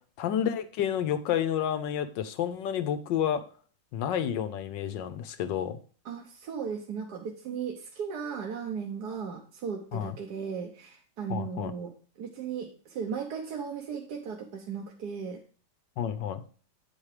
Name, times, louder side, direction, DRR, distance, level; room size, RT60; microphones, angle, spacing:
voice 1, 0.2-3.4 3.9-5.8 9.9-10.2 11.3-11.7 16.0-16.4, left 9 dB, 80° left, 10 dB, 1.4 m, -30 dB
voice 2, 6.0-15.4, right 6 dB, 65° right, 1 dB, 1.4 m, -36 dB
8.7 x 4.8 x 4.8 m, 0.40 s
omnidirectional pair, 1.9 m